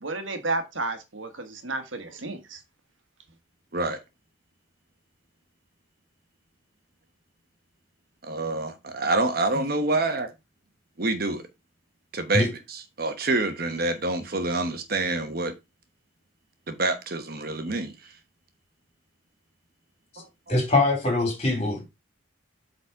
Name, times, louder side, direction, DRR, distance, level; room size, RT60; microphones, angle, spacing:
voice 1, 0.0-2.6, right 3 dB, 75° right, 1.3 m, -32 dB
voice 2, 8.3-10.3 11.0-11.4 12.1-15.5 16.7-17.9 20.2-20.3, right 2 dB, 50° right, 1.1 m, -27 dB
voice 3, 20.5-21.8, left 2 dB, 30° left, 3.5 m, -23 dB
8.2 x 4.1 x 4.6 m
head